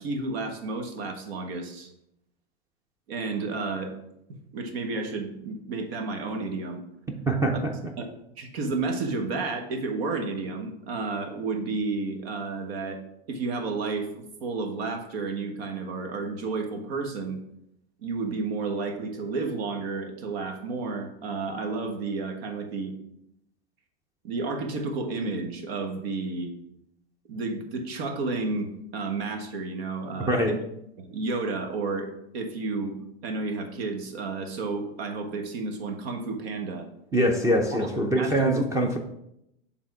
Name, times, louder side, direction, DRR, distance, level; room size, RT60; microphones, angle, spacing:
voice 1, 0.0-1.9 3.1-3.9 4.5-6.8 7.5-7.6 8.0-8.1 8.4-13.0 13.3-17.4 18.0-22.9 24.2-26.5 27.3-30.6 31.0-33.0 33.2-36.9 37.5-37.9 38.2-38.6, right 3 dB, 70° right, 5 dB, 1.4 m, -31 dB
voice 2, 7.3-7.7 30.3-30.6 37.1-39.0, right 1 dB, 10° right, 3 dB, 0.6 m, -23 dB
7.3 x 3.7 x 4.7 m, 0.81 s
supercardioid pair, 130°, 32 cm